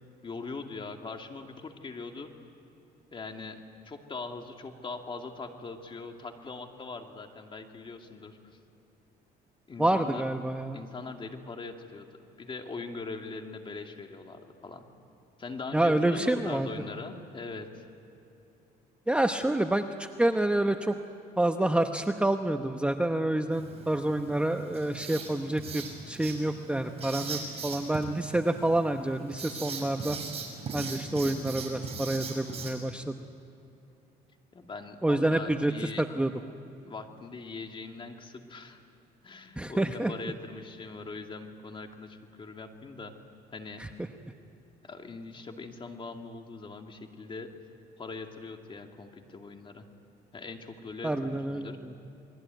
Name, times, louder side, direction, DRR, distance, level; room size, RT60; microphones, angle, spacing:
voice 1, 0.2-2.3 3.1-8.4 9.7-10.3 10.7-12.1 12.4-14.9 15.4-17.8 34.5-36.3 36.8-38.8 39.2-43.1 43.5-43.8 44.8-47.5 48.0-49.9 50.3-51.8, left 3 dB, 30° left, 4 dB, 2.6 m, -41 dB
voice 2, 9.8-10.8 15.7-16.7 19.1-20.9 21.4-30.2 30.7-33.1 35.0-35.7 36.0-36.3 39.6-40.1 43.8-43.9 51.0-51.7, right 1 dB, 5° right, 6 dB, 0.9 m, -28 dB
Writing, 23.5-32.7, right 4 dB, 35° right, 7.0 m, -40 dB
28.5 x 21.5 x 9.2 m, 2.9 s
cardioid pair, 110°, 17 cm